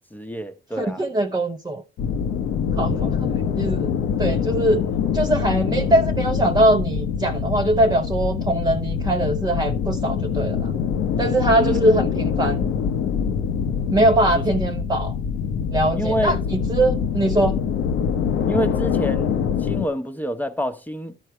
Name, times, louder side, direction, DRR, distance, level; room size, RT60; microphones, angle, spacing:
voice 1, 0.1-1.0 2.8-3.1 11.6-11.8 14.3-14.4 15.9-16.4 18.5-19.4 19.6-21.2, equal, 10° left, 0.9 m, -27 dB
voice 2, 0.8-1.8 2.8-3.9 4.2-4.8 5.1-10.7 11.2-12.7 13.9-15.1 15.7-16.4 16.7-17.6, right 1 dB, 20° right, 0.7 m, -21 dB
sound 1, 2.0-19.9, left 7 dB, 80° left, 0.9 m, -24 dB
12.0 x 4.6 x 4.4 m
cardioid pair, 90°, 20 cm